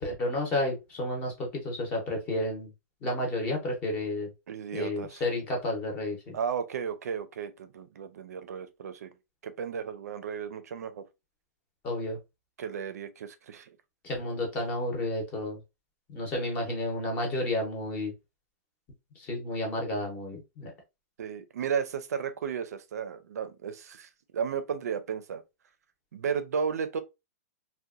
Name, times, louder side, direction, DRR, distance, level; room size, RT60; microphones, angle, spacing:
voice 1, 0.0-2.7 3.0-4.3 4.7-6.4 11.8-12.2 14.0-15.6 16.1-18.1 19.2-20.7, left 1 dB, 15° left, 0.7 m, -31 dB
voice 2, 4.5-5.2 6.3-9.1 9.4-11.0 12.6-13.8 21.2-25.4 26.1-27.0, right 7 dB, 80° right, 0.5 m, -34 dB
2.8 x 2.1 x 2.3 m
hypercardioid pair, 170°, 8 cm